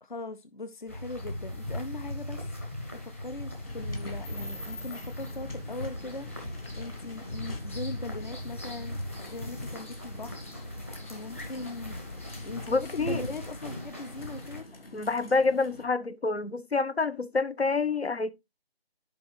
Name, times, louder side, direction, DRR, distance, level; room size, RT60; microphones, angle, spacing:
voice 1, 0.0-2.5 2.9-10.4 11.1-12.0 12.4-14.7, left 2 dB, 50° left, 0.8 m, -40 dB
sound 1, 0.9-14.6, left 1 dB, 15° left, 1.0 m, -38 dB
sound 2, 3.6-15.8, left 1 dB, 65° left, 2.8 m, -49 dB
voice 2, 12.7-13.2 14.9-18.3, left 3 dB, 80° left, 1.2 m, -27 dB
10.0 x 5.3 x 3.2 m
figure-of-eight pair, 165°, 31 cm